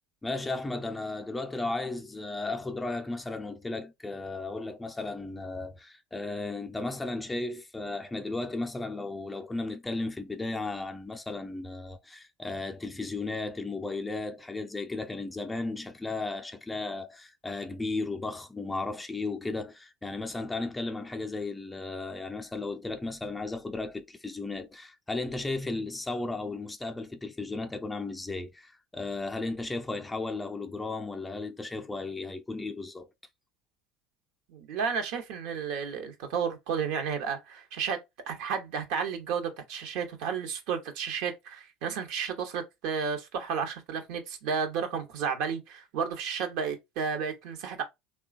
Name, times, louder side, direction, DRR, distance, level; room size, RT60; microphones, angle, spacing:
voice 1, 0.2-33.1, left 3 dB, 15° left, 0.5 m, -35 dB
voice 2, 34.5-38.0 38.3-47.8, right 6 dB, 65° right, 0.8 m, -32 dB
3.0 x 2.2 x 2.4 m
hypercardioid pair, 75°, 0 cm